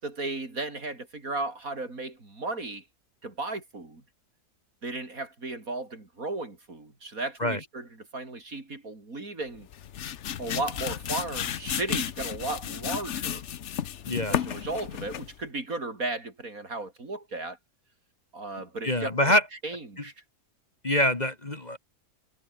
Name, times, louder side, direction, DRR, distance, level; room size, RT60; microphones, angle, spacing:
voice 1, 0.0-2.8 3.2-4.0 4.8-9.7 10.4-13.4 14.3-17.6 18.3-19.4 19.6-20.1, right 2 dB, 60° right, 4.9 m, -35 dB
sound 1, 9.6-15.4, left 9 dB, 55° left, 1.0 m, -33 dB
voice 2, 18.8-19.4 20.8-21.8, left 1 dB, 25° left, 2.1 m, -25 dB
omnidirectional pair, 1.7 m